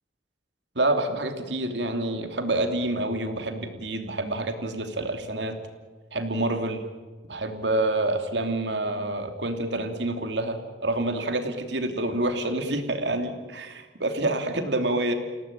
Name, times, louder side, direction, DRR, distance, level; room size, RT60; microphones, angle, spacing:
voice 1, 0.7-5.6 6.1-6.8 7.3-15.1, right 2 dB, 75° right, 6 dB, 2.9 m, -27 dB
29.5 x 17.5 x 9.0 m, 1.4 s
head